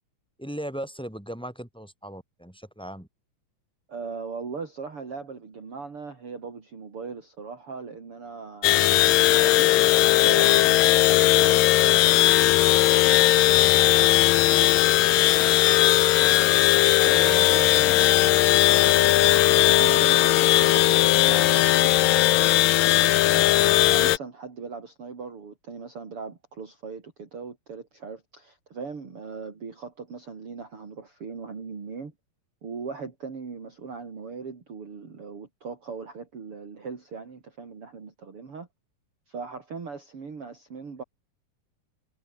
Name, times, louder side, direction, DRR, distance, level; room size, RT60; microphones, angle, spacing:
voice 1, 0.4-3.1, equal, ahead, 7.7 m, -37 dB
voice 2, 3.9-14.7 15.1-16.7 17.1-32.1 32.6-38.7 39.3-41.0, right 5 dB, 40° right, 4.0 m, -39 dB
sound 1, 8.6-24.2, left 15 dB, 80° left, 2.6 m, -18 dB
omnidirectional pair, 4.0 m